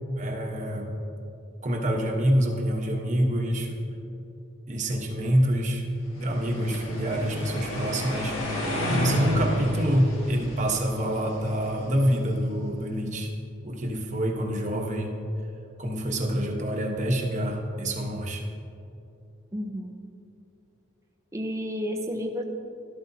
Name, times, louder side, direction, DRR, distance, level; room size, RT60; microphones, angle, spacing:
voice 1, 0.2-0.9 1.6-3.8 4.7-5.8 6.1-8.4 8.9-13.3 13.6-15.1 15.8-18.4, equal, 35° right, 1 dB, 1.1 m, -26 dB
sound 1, 6.2-12.3, equal, 85° left, 1.7 m, -31 dB
voice 2, 19.5-20.0 21.3-22.5, equal, 15° right, 2 dB, 0.6 m, -31 dB
13.0 x 12.0 x 2.8 m, 2.7 s
head